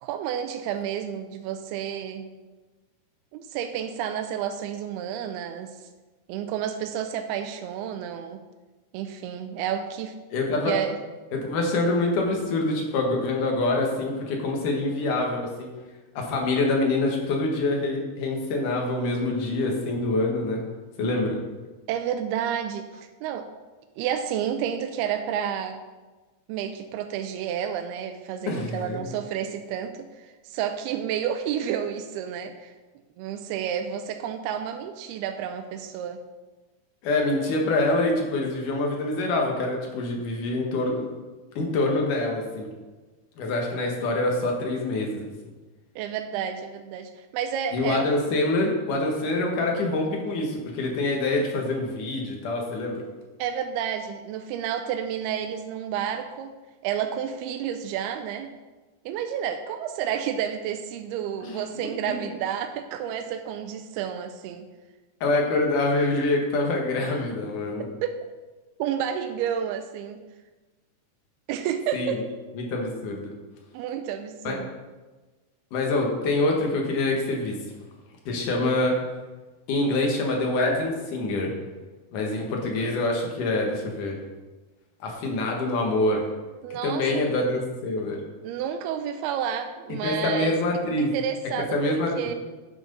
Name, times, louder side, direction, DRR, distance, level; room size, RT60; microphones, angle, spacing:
voice 1, 0.0-2.3 3.3-5.8 6.3-8.4 8.9-10.1 10.7-11.0 21.9-23.5 24.0-25.8 26.5-32.7 33.2-36.2 46.0-48.1 53.4-56.5 56.8-58.5 59.1-64.7 67.8-68.2 68.8-70.2 71.5-72.2 73.7-74.7 86.6-87.1 88.4-90.6 91.0-92.3, right 9 dB, 80° right, 6 dB, 2.4 m, -30 dB
voice 2, 10.3-10.7 11.3-15.7 16.2-20.6 21.0-21.4 28.5-29.0 37.0-41.0 41.6-42.7 43.4-45.3 47.7-53.0 61.4-61.6 65.2-67.9 71.9-72.1 72.6-73.3 74.4-74.6 75.7-77.6 78.3-79.0 79.7-81.5 82.1-84.2 85.0-86.3 86.8-88.2 90.0-91.1 91.7-92.3, left 2 dB, 60° left, 0 dB, 2.6 m, -25 dB
9.4 x 6.1 x 5.3 m, 1.2 s
omnidirectional pair, 4.7 m